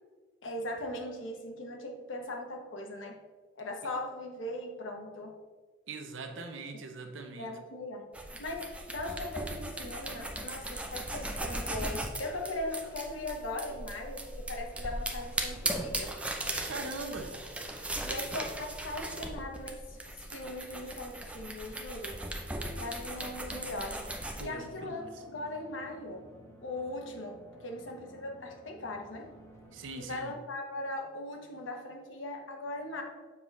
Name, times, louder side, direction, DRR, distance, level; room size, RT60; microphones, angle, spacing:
voice 1, 0.4-3.2 3.6-5.3 7.4-8.1 8.4-16.2 18.0-22.2 22.8-24.0 24.4-26.3 26.6-29.3 30.0-33.0, left 1 dB, 85° left, 2 dB, 1.0 m, -39 dB
voice 2, 5.9-7.5 16.7-17.4 24.4-25.2 29.7-30.3, right 3 dB, 90° right, 5 dB, 0.7 m, -41 dB
sound 1, 8.1-24.4, right 1 dB, 5° right, 0.5 m, -38 dB
sound 2, 23.6-30.2, right 1 dB, 15° left, 0.9 m, -55 dB
7.1 x 4.8 x 3.2 m, 1.4 s
head